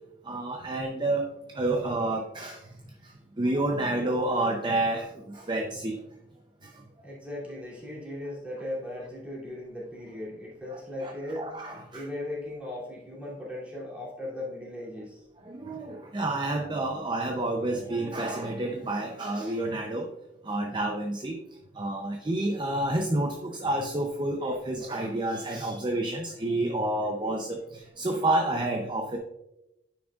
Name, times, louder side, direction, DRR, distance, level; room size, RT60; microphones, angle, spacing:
voice 1, 0.3-1.3 1.5-2.6 3.4-6.0 10.7-12.0 15.5-20.1 20.5-21.4 21.8-29.2, right 2 dB, 25° right, 2 dB, 0.6 m, -29 dB
voice 2, 7.0-11.5 11.9-15.3, left 1 dB, 10° right, -7 dB, 2.8 m, -37 dB
10.0 x 6.1 x 2.4 m, 0.87 s
head